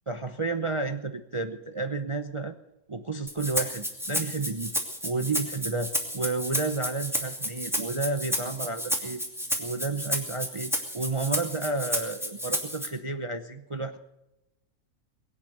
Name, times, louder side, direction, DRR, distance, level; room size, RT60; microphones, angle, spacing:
voice 1, 0.1-2.5 2.9-4.7 5.0-9.2 9.6-14.0, right 3 dB, 25° right, 7 dB, 0.7 m, -31 dB
Rattle (instrument), 3.3-12.9, equal, ahead, 2.6 m, -31 dB
22.5 x 9.2 x 6.7 m, 0.92 s
omnidirectional pair, 1.5 m